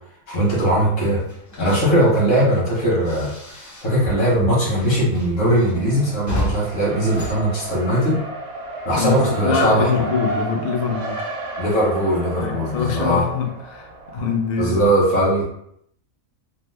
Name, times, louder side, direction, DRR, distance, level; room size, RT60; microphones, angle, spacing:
voice 1, 0.3-1.2 1.6-3.3 3.8-8.2 8.8-9.9 11.6-13.3 14.6-15.4, right 1 dB, 60° left, -6 dB, 1.7 m, -19 dB
sound 1, 1.2-4.1 4.4-8.3, left 1 dB, 20° left, 0.4 m, -33 dB
Race car auto racing, 5.5-14.6, right 1 dB, 80° right, 0.3 m, -32 dB
voice 2, 9.0-11.2 12.4-14.8, left 5 dB, 85° left, 2 dB, 0.4 m, -24 dB
3.5 x 2.0 x 3.3 m, 0.71 s
omnidirectional pair, 1.5 m